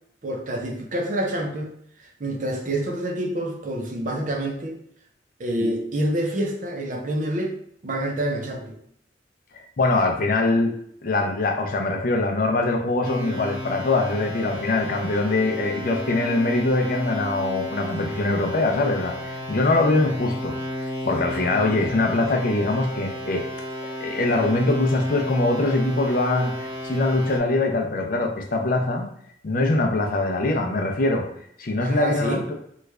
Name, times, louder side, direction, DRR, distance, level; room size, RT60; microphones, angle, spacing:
voice 1, 0.2-1.7 2.2-4.8 5.4-7.6 7.8-8.8 31.8-32.4, right 1 dB, 45° right, 1 dB, 0.6 m, -27 dB
voice 2, 9.5-10.7 11.0-19.1 19.5-20.6 21.0-23.5 24.0-29.1 29.4-31.3 31.6-32.5, left 2 dB, 50° left, 3 dB, 0.5 m, -23 dB
sound 1, 13.0-27.4, equal, 10° right, 0.8 m, -33 dB
3.1 x 2.4 x 3.3 m, 0.69 s
head